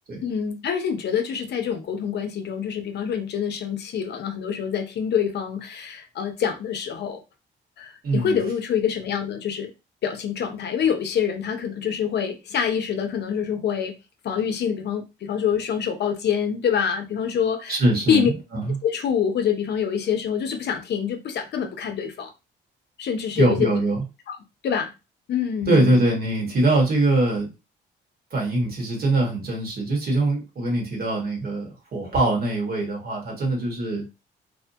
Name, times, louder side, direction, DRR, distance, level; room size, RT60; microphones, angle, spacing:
voice 1, 0.2-7.2 7.8-9.7 10.0-13.9 14.2-17.8 18.1-18.3 18.8-22.3 23.0-23.7 24.3-24.4 24.6-24.9 25.3-26.0, left 8 dB, 60° left, 0.6 m, -26 dB
voice 2, 8.0-8.4 17.7-18.3 18.5-18.8 23.3-24.0 25.7-27.5 28.3-34.0, right 2 dB, 50° right, 1.3 m, -22 dB
2.7 x 2.2 x 2.6 m
cardioid pair, 90°, 20 cm